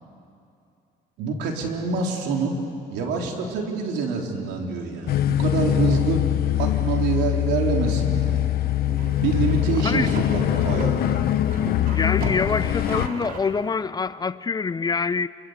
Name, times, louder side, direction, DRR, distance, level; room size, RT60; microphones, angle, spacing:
voice 1, 1.2-2.6 2.9-6.3 6.6-8.5 9.2-11.3, right 4 dB, 85° right, 3.8 m, -26 dB
sound 1, 5.1-13.1, left 13 dB, 65° left, 0.9 m, -23 dB
sound 2, 8.8-13.5, right 3 dB, 60° right, 3.8 m, -36 dB
voice 2, 9.8-10.4 11.9-15.3, left 5 dB, 25° left, 0.5 m, -26 dB
27.5 x 22.5 x 8.2 m
cardioid pair, 110°, 17 cm